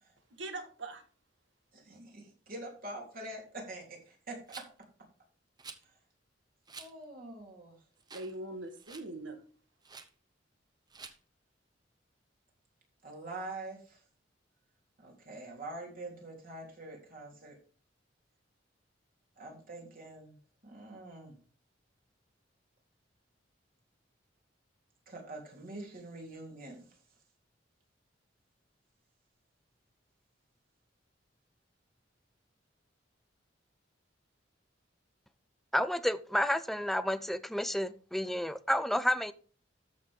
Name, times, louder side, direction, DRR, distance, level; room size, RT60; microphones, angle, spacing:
voice 1, 0.3-1.0 8.1-9.4, right 2 dB, 80° right, 1.7 m, -41 dB
voice 2, 1.7-4.7 6.8-7.8 13.0-14.0 15.0-17.6 19.4-20.4 20.6-21.4 25.1-26.9, right 2 dB, 50° right, 3.6 m, -45 dB
Rattle, 4.5-4.8 5.6-5.8 6.7-6.9 7.4-7.5 8.0-8.4 8.6-9.1 9.8-10.1 10.9-11.2, right 4 dB, 20° right, 0.8 m, -49 dB
voice 3, 35.7-39.3, equal, ahead, 0.4 m, -30 dB
13.0 x 6.3 x 3.7 m
head